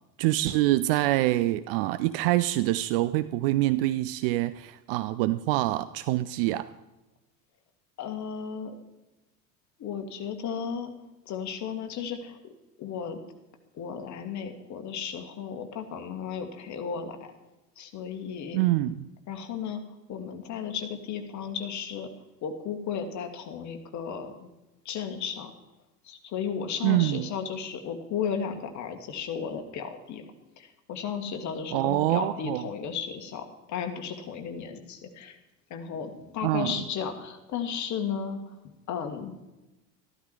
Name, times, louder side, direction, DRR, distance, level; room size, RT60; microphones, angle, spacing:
voice 1, 0.2-6.7 18.5-19.1 26.8-27.3 31.7-32.6 36.4-36.7, right 16 dB, 40° right, 14 dB, 0.4 m, -25 dB
voice 2, 8.0-8.8 9.8-10.9 11.3-12.4 12.8-13.2 13.7-17.3 17.8-18.6 19.3-19.8 20.1-22.1 22.4-24.5 24.9-25.5 26.0-30.2 30.6-35.4 35.7-38.6 38.9-39.3, left 7 dB, 35° left, 6 dB, 1.8 m, -34 dB
13.5 x 12.5 x 4.7 m, 1.0 s
figure-of-eight pair, 70°, 48 cm